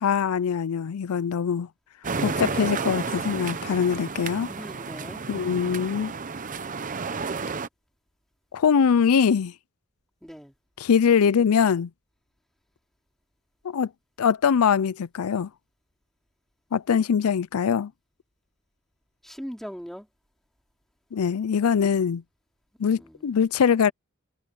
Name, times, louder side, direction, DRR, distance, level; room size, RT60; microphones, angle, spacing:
voice 1, 0.0-1.7 2.2-4.5 5.3-6.1 8.5-9.5 10.8-11.9 13.6-13.9 14.2-15.5 16.7-17.9 21.1-22.2 22.8-23.9, left 7 dB, 80° left, 0.4 m, -22 dB
sound 1, 2.0-7.7, right 4 dB, 35° right, 0.8 m, -31 dB
voice 2, 4.5-5.2 10.2-10.5 19.2-20.1 22.9-23.3, equal, ahead, 4.2 m, -40 dB
head